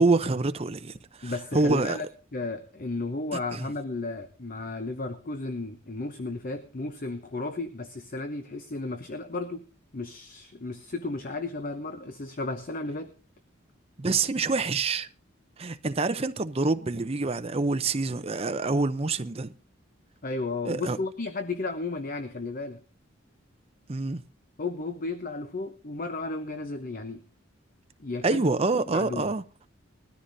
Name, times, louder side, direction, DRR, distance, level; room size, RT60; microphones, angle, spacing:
voice 1, 0.0-2.0 3.5-3.7 14.0-15.1 15.6-19.5 20.6-21.0 23.9-24.2 28.2-29.4, right 3 dB, 30° right, 0.6 m, -26 dB
voice 2, 1.2-2.1 2.3-9.6 9.9-13.1 20.2-22.8 24.6-27.2 28.0-28.5 28.9-29.2, left 3 dB, 45° left, 0.8 m, -34 dB
20.5 x 13.5 x 2.7 m
head